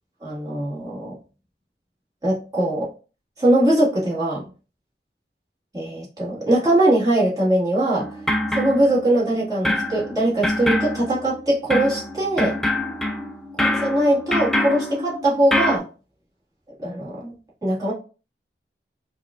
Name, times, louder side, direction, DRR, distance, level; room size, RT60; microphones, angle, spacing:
voice 1, 0.2-1.1 2.2-2.9 3.4-4.5 5.7-8.1 8.5-12.6 13.7-15.8 16.8-17.3 17.6-17.9, right 1 dB, 20° right, -7 dB, 1.6 m, -21 dB
sound 1, 8.0-9.3 9.6-15.8, left 1 dB, ahead, 0.4 m, -25 dB
5.1 x 2.3 x 2.4 m, 0.35 s
head